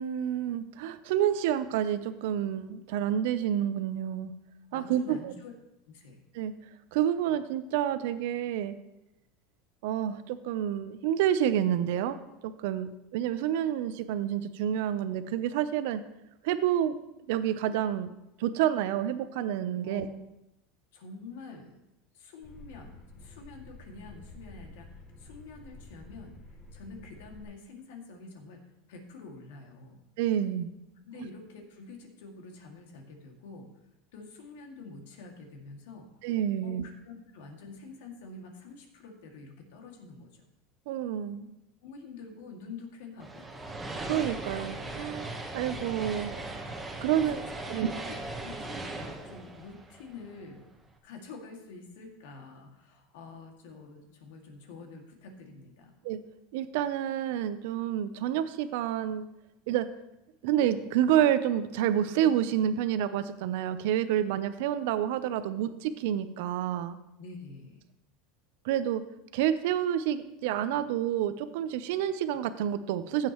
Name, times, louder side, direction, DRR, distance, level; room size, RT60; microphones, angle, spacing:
voice 1, 0.0-4.3 4.7-5.3 6.3-6.5 6.9-8.8 9.8-12.2 12.4-16.0 16.4-17.0 17.3-18.1 18.4-20.1 30.2-30.7 36.2-36.8 40.9-41.5 44.1-46.3 47.0-47.4 47.7-47.9 56.0-56.2 56.5-59.3 59.7-59.9 60.4-67.0 68.6-69.0 69.3-73.3, right 10 dB, 70° right, 12 dB, 0.7 m, -29 dB
voice 2, 4.7-5.5 5.9-6.2 19.8-20.2 20.9-21.8 22.1-26.3 26.7-28.6 28.9-30.0 31.0-33.7 34.1-36.1 36.6-40.5 41.8-43.5 47.1-47.4 47.7-48.0 48.3-50.7 51.0-56.0 67.2-67.8, left 4 dB, 80° left, 2 dB, 2.3 m, -47 dB
sound 1, 22.4-27.4, left 2 dB, 10° left, 1.4 m, -50 dB
sound 2, 43.2-50.6, right 2 dB, 10° right, 1.3 m, -39 dB
16.0 x 7.5 x 3.1 m, 0.88 s
supercardioid pair, 135°, 0 cm